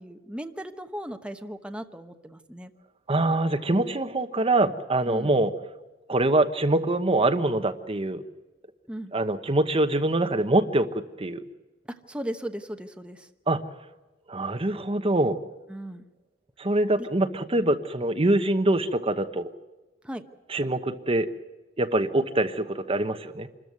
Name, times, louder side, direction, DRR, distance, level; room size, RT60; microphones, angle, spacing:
voice 1, 0.0-2.7 5.1-5.4 8.9-9.1 11.9-13.3 15.7-16.0 20.0-20.3, right 1 dB, 5° right, 6 dB, 1.0 m, -37 dB
voice 2, 3.1-5.5 6.1-8.2 9.1-10.9 11.2-11.4 13.5-13.6 14.3-15.4 16.6-19.5 20.5-21.3 21.8-23.5, right 2 dB, 30° right, 9 dB, 1.0 m, -24 dB
26.5 x 14.0 x 9.5 m, 1.2 s
head